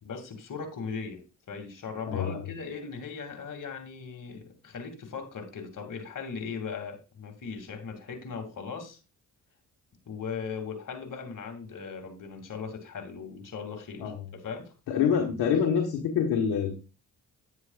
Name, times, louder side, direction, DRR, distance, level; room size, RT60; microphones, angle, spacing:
voice 1, 0.0-1.2 1.5-9.0 10.1-14.7 15.0-15.1, left 5 dB, 55° left, 4 dB, 2.5 m, -38 dB
voice 2, 2.1-2.4 14.0-14.2 14.9-16.8, left 7 dB, 80° left, 1 dB, 1.4 m, -26 dB
9.5 x 9.2 x 2.4 m, 0.32 s
supercardioid pair, 50°, 37 cm